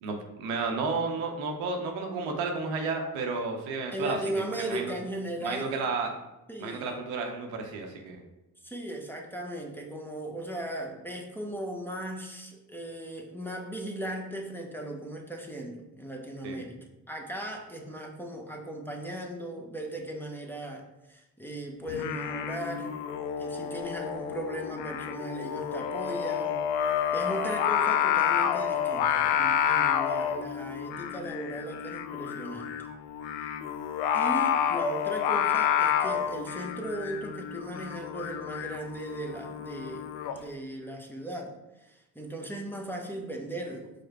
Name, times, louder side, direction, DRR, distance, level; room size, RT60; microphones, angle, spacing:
voice 1, 0.0-5.0 5.4-6.1 6.6-8.2 16.4-16.6, right 4 dB, 80° right, 3 dB, 0.8 m, -32 dB
voice 2, 3.9-5.8 6.5-6.9 8.6-16.8 17.1-20.8 21.1-22.9 23.4-26.6 27.1-32.7 33.4-33.5 34.1-40.1 40.4-43.9, right 1 dB, 5° left, 0 dB, 0.8 m, -37 dB
Singing, 21.9-40.4, left 9 dB, 75° left, 0.5 m, -29 dB
4.9 x 2.1 x 4.5 m, 0.97 s
hypercardioid pair, 50°, 47 cm